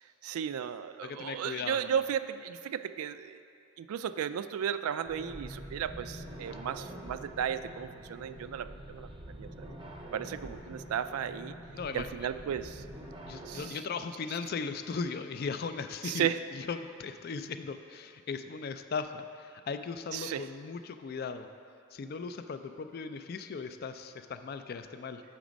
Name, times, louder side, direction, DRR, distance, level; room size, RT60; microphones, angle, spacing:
voice 1, 0.2-3.4 3.8-9.1 9.4-9.7 10.1-11.6 11.9-12.8 13.5-13.8 14.3-14.4 16.0-16.4 20.1-20.5, right 8 dB, 80° right, 13 dB, 0.3 m, -34 dB
voice 2, 1.0-1.8 11.7-12.1 13.3-16.3 16.5-21.5 21.9-25.2, left 5 dB, 45° left, 9 dB, 0.3 m, -38 dB
sound 1, 5.0-13.7, right 1 dB, 20° right, 0.6 m, -45 dB
7.2 x 5.9 x 5.1 m, 2.4 s
head